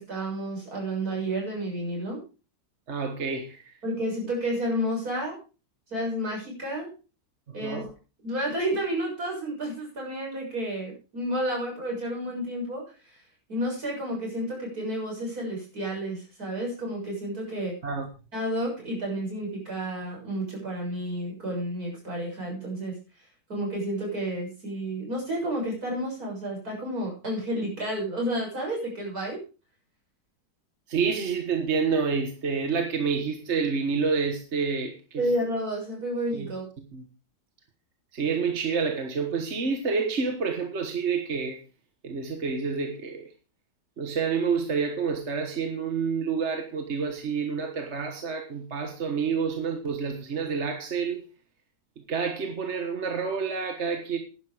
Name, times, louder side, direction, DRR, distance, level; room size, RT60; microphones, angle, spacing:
voice 1, 0.0-2.2 3.8-5.4 5.9-6.9 7.5-7.9 8.2-12.8 13.1-13.2 13.5-17.8 18.3-23.0 23.5-29.4 35.2-36.7, right 1 dB, 65° right, 7.3 m, -31 dB
voice 2, 2.9-3.7 7.5-7.9 17.8-18.1 30.9-35.3 36.3-36.5 36.9-37.0 38.1-41.6 42.0-43.3 44.0-51.2 52.1-54.2, right 5 dB, 45° right, 1.6 m, -28 dB
11.0 x 11.0 x 4.9 m
omnidirectional pair, 1.7 m